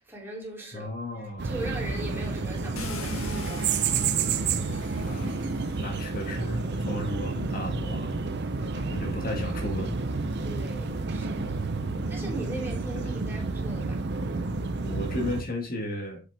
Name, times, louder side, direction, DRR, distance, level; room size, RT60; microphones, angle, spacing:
voice 1, 0.0-3.8 8.5-8.9 10.4-11.6 12.1-14.0, right 1 dB, 10° right, 2.8 m, -39 dB
voice 2, 0.7-1.5 5.0-5.4 5.8-8.2 8.7-10.0 11.4-12.1 14.8-16.2, left 1 dB, 45° left, 1.5 m, -34 dB
sound 1, 1.4-15.4, right 4 dB, 50° right, 0.6 m, -30 dB
Car, 2.8-6.9 7.8-7.9 8.4-11.7, left 4 dB, 80° left, 1.5 m, -45 dB
7.7 x 5.9 x 3.4 m
head